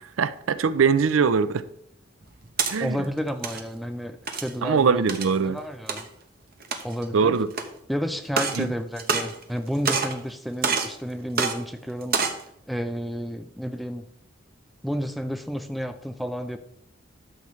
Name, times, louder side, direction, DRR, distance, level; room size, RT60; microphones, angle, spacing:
voice 1, 0.0-1.6 2.7-3.0 4.6-5.6 7.1-7.5 8.6-8.7, right 5 dB, 90° right, 0.5 m, -22 dB
sound 1, 2.2-2.7 3.3-3.6 4.3-4.6 5.1-5.3 5.9-6.0 6.6-7.0 7.5-7.6 8.3-8.6 9.0-9.6 9.9-10.2 10.6-10.9 11.4-11.5 12.0-12.4, right 5 dB, 50° right, 0.9 m, -26 dB
voice 2, 2.8-5.0 5.4-6.1 6.8-7.4 7.9-12.4 12.7-14.1 14.8-16.6, equal, ahead, 0.5 m, -31 dB
12.0 x 7.0 x 3.2 m
head